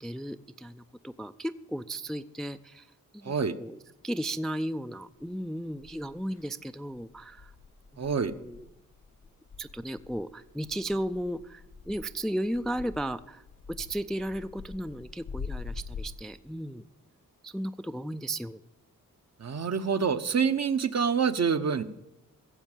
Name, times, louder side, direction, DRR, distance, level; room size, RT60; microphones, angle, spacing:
voice 1, 0.0-2.9 3.1-3.8 4.0-7.5 7.9-8.7 9.6-16.8 17.4-18.6, right 1 dB, ahead, 11 dB, 0.4 m, -35 dB
voice 2, 3.2-3.5 8.0-8.3 19.4-21.8, right 6 dB, 50° right, 10 dB, 0.9 m, -26 dB
sound 1, 5.2-5.3 5.8-6.5 6.9-16.2, left 4 dB, 60° left, 1.1 m, -44 dB
16.0 x 7.3 x 7.3 m, 0.92 s
cardioid pair, 65°, 34 cm